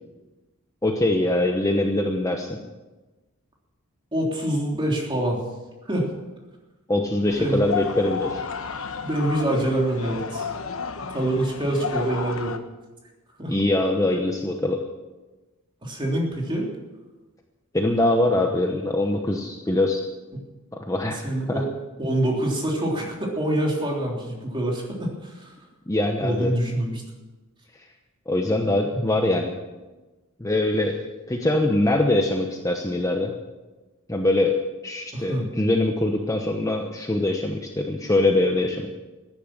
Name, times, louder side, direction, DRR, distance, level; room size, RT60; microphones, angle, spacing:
voice 1, 0.8-2.6 6.9-8.4 13.5-14.8 17.7-20.0 20.7-21.2 21.5-21.6 25.9-26.5 28.3-29.6 30.4-31.0 31.3-33.3 34.1-34.6 34.8-38.9, left 1 dB, 15° left, 3 dB, 1.0 m, -23 dB
voice 2, 4.1-5.4 5.9-6.1 7.4-7.6 9.0-10.5 11.1-12.6 13.4-13.6 15.8-16.7 20.3-20.4 21.2-21.7 22.0-25.5 26.2-27.0 28.9-29.1 35.1-35.5, right 1 dB, 20° right, -1 dB, 3.4 m, -25 dB
sound 1, 7.3-12.6, left 5 dB, 65° left, 1.1 m, -32 dB
15.0 x 11.0 x 7.4 m, 1.2 s
head